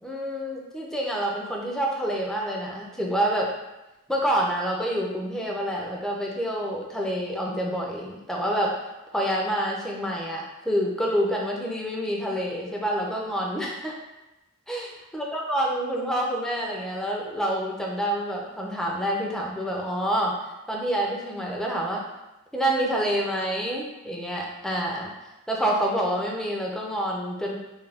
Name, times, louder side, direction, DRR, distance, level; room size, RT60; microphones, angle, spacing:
voice 1, 0.0-3.5 4.1-8.7 9.1-14.0 14.7-20.3 20.7-22.0 22.5-25.1 25.5-27.6, equal, ahead, -2 dB, 0.3 m, -27 dB
2.4 x 2.2 x 3.3 m, 1.0 s
head